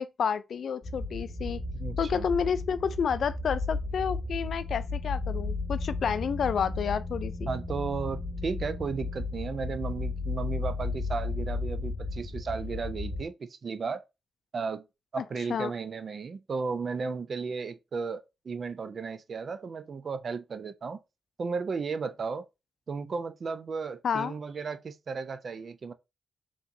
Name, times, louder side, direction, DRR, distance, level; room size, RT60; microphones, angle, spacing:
voice 1, 0.0-1.6 2.0-7.5 15.2-15.3 15.5-15.7 24.0-24.3, left 7 dB, 70° left, 0.3 m, -30 dB
sound 1, 0.8-13.3, left 3 dB, 35° left, 0.9 m, -34 dB
voice 2, 1.7-2.3 7.5-14.0 14.5-14.8 15.1-21.0 21.4-22.5 22.9-25.9, right 5 dB, 55° right, 0.4 m, -34 dB
4.3 x 3.0 x 2.5 m
supercardioid pair, 45°, 0 cm